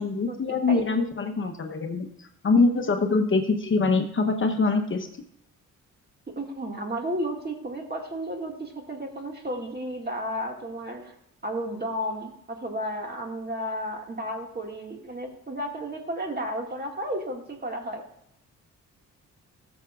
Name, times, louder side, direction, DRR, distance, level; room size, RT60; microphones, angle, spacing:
voice 1, 0.0-5.1, left 3 dB, 40° left, 5 dB, 0.9 m, -24 dB
voice 2, 6.4-11.1 11.4-18.0, equal, 30° right, 2 dB, 2.0 m, -33 dB
13.0 x 7.1 x 2.4 m, 0.76 s
cardioid pair, 75°, 32 cm